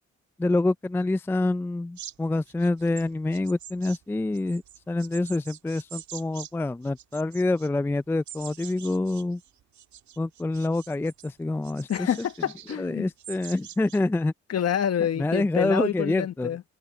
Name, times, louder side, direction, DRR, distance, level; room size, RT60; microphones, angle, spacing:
voice 1, 0.4-9.4 10.2-12.1 12.8-14.3 15.2-16.5, left 2 dB, 10° left, 0.4 m, -26 dB
sound 1, 2.0-6.5 6.8-7.7 8.3-11.3 11.6-12.8 13.2-14.0, right 11 dB, 70° right, 1.8 m, -45 dB
voice 2, 11.9-13.1 14.5-16.6, left 9 dB, 55° left, 1.3 m, -27 dB
cardioid pair, 90°, 30 cm